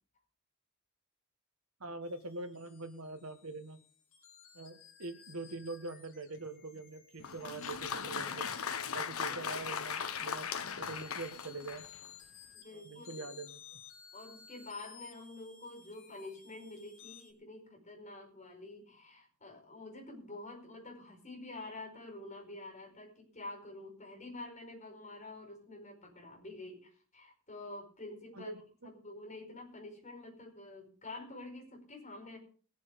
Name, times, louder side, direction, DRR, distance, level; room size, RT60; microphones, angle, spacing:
voice 1, 1.8-3.8 4.5-8.5 8.9-11.9 12.7-13.8 28.3-28.9, right 3 dB, 80° right, 8 dB, 1.6 m, -44 dB
sound 1, 2.0-17.3, left 8 dB, 70° left, 2.7 m, -57 dB
Applause, 7.2-12.1, left 6 dB, 85° left, 1.0 m, -38 dB
voice 2, 12.5-13.1 14.1-28.5 28.8-32.4, left 2 dB, 35° left, 1 dB, 4.8 m, -48 dB
21.0 x 7.3 x 5.2 m, 0.43 s
head